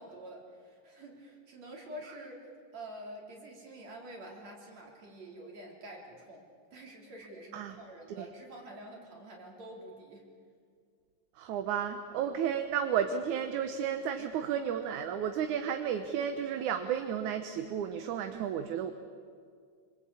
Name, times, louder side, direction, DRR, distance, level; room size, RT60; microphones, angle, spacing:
voice 1, 0.0-2.4 2.7-10.3, right 1 dB, 55° right, 0 dB, 5.0 m, -47 dB
voice 2, 11.4-18.9, right 8 dB, 70° right, 7 dB, 2.4 m, -32 dB
26.5 x 25.5 x 8.6 m, 2.1 s
omnidirectional pair, 3.8 m